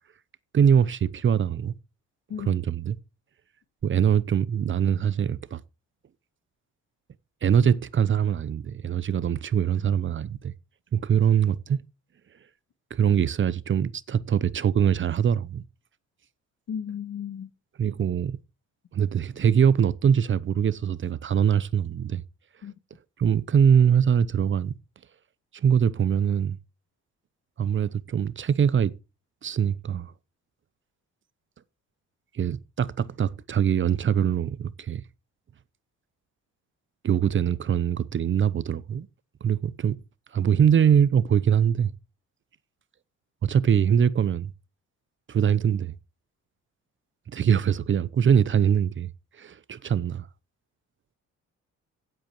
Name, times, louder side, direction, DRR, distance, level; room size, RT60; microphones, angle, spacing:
voice 1, 0.5-1.7 2.4-3.0 3.8-5.6 7.4-10.5 10.9-11.8 12.9-15.6 17.8-18.4 18.9-22.2 23.2-24.7 25.5-26.6 27.6-28.9 29.4-30.1 32.3-35.0 37.0-39.1 39.4-40.0 40.3-41.9 43.4-44.5 45.3-45.9 47.3-49.1 49.4-50.3, right 8 dB, 40° right, 0.7 m, -23 dB
voice 2, 16.7-17.5 22.6-22.7, left 8 dB, 60° left, 1.6 m, -34 dB
16.0 x 7.8 x 3.0 m
cardioid pair, 90°, 30 cm